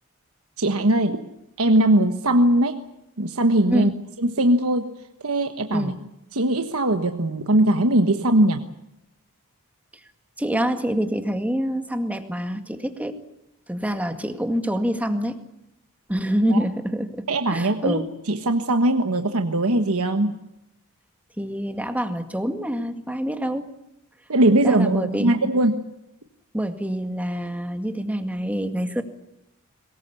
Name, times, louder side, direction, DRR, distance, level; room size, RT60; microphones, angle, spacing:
voice 1, 0.6-1.2 1.6-2.8 3.2-3.9 4.2-4.9 5.2-5.9 6.3-8.6 16.5-16.6 17.3-20.3 24.3-25.8, right 1 dB, 70° right, 6 dB, 1.4 m, -20 dB
voice 2, 10.4-13.1 13.7-15.4 16.1-18.1 21.4-23.7 24.6-25.3 26.5-29.0, equal, 5° right, 6 dB, 2.0 m, -26 dB
23.0 x 20.5 x 8.4 m, 0.85 s
head